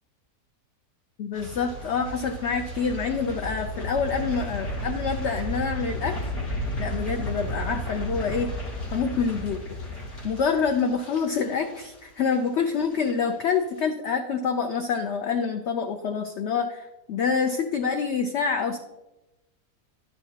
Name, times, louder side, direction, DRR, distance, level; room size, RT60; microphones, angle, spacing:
voice 1, 1.2-6.3 6.8-8.5 8.9-9.8 10.2-18.8, left 5 dB, 65° left, 4 dB, 0.7 m, -27 dB
sound 1, 1.3-12.5 12.7-13.1 13.4-13.5, equal, 85° left, 2.7 m, -33 dB
11.0 x 9.0 x 2.8 m, 0.98 s
omnidirectional pair, 1.7 m